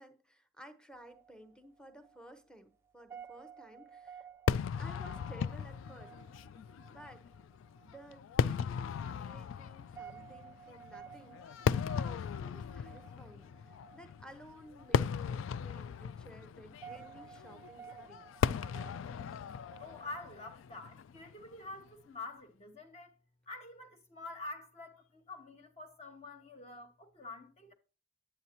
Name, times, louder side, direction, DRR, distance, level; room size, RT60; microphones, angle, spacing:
voice 1, 0.0-4.3 4.8-6.1 6.9-7.3 7.8-18.3, equal, 5° left, 0.7 m, -55 dB
sound 1, 0.9-20.5, right 7 dB, 10° right, 0.3 m, -55 dB
Fireworks, 4.5-21.8, left 7 dB, 75° left, 0.3 m, -37 dB
voice 2, 19.8-23.1 23.5-27.7, left 2 dB, 30° left, 0.9 m, -47 dB
9.5 x 8.2 x 2.9 m
head